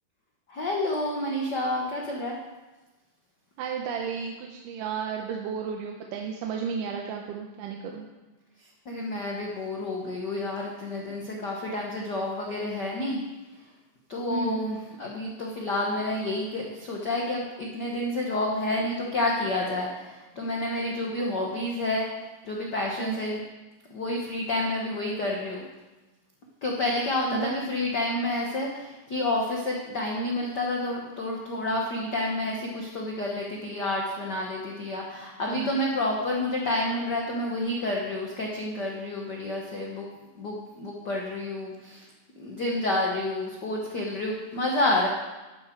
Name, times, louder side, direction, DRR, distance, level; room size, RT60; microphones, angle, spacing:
voice 1, 0.5-2.4 8.8-13.2 14.1-22.1 22.4-23.4 23.9-25.6 26.6-40.1 40.3-42.1 42.4-45.1, left 1 dB, 70° left, -1 dB, 1.0 m, -29 dB
voice 2, 3.6-8.1 14.3-14.6 23.0-23.2 27.3-27.6 35.5-35.8, right 6 dB, 80° right, 2 dB, 2.3 m, -33 dB
12.5 x 9.8 x 4.6 m, 1.1 s
omnidirectional pair, 3.9 m